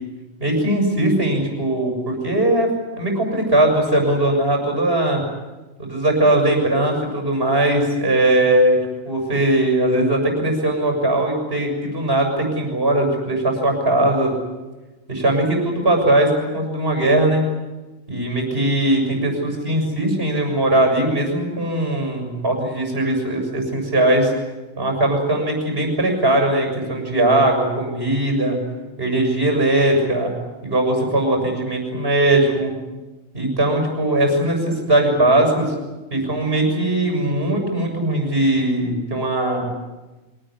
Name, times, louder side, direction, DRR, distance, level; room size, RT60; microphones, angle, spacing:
voice 1, 0.4-2.7 3.0-5.2 5.8-8.8 9.0-14.3 15.1-17.4 18.1-24.3 24.8-28.6 29.0-30.3 30.6-32.7 33.3-35.7 36.1-39.7, right 1 dB, 50° right, 3 dB, 7.2 m, -19 dB
25.5 x 19.0 x 9.9 m, 1.2 s
omnidirectional pair, 1.3 m